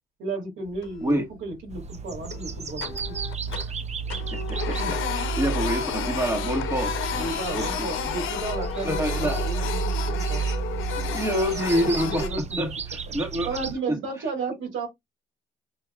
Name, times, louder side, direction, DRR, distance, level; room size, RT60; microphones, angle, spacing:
voice 1, 0.2-3.0 4.6-5.0 7.2-10.4 12.0-12.7 13.4-14.9, right 3 dB, 80° right, 2.8 m, -33 dB
Printer, 0.7-1.3 1.7-1.8 2.2-3.8 4.1-12.3, left 8 dB, 85° left, 0.8 m, -32 dB
sound 1, 1.7-13.7, right 5 dB, 35° right, 0.6 m, -32 dB
voice 2, 4.3-7.0 7.5-7.9 8.8-9.4 11.0-12.3 12.6-13.6 13.9-14.0, right 1 dB, 15° right, 1.4 m, -27 dB
5.9 x 2.8 x 2.3 m
cardioid pair, 90°, 20 cm